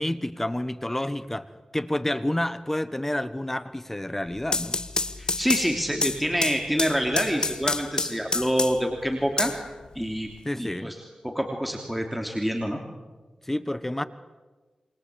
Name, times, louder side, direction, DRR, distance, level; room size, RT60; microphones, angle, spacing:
voice 1, 0.0-1.5 1.7-4.8 10.4-10.9 13.4-14.0, left 1 dB, 15° left, 13 dB, 1.2 m, -29 dB
sound 1, 4.3-8.9 9.4-10.3, left 3 dB, 40° left, 1.4 m, -28 dB
voice 2, 5.2-9.5 9.9-10.3 10.5-10.9 11.2-12.8, equal, ahead, 2 dB, 3.0 m, -26 dB
28.0 x 25.0 x 8.5 m, 1.3 s
wide cardioid pair, 80°, 2 cm